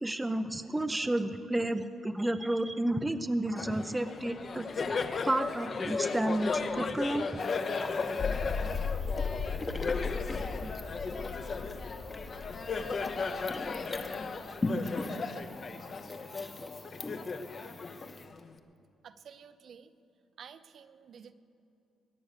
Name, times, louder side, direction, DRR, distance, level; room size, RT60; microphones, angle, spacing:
voice 1, 0.0-5.0 5.2-7.5 10.6-10.7, right 1 dB, 10° right, 9 dB, 0.6 m, -31 dB
Laughter, 3.6-18.6, left 4 dB, 40° left, 0.8 m, -36 dB
sound 1, 7.4-18.3, left 2 dB, 20° left, 1.0 m, -41 dB
sound 2, 8.2-14.5, left 5 dB, 65° left, 3.2 m, -37 dB
voice 2, 19.0-19.9 20.4-21.3, right 7 dB, 55° right, 10 dB, 0.7 m, -51 dB
22.0 x 9.4 x 6.7 m, 2.6 s
cardioid pair, 125°, 0 cm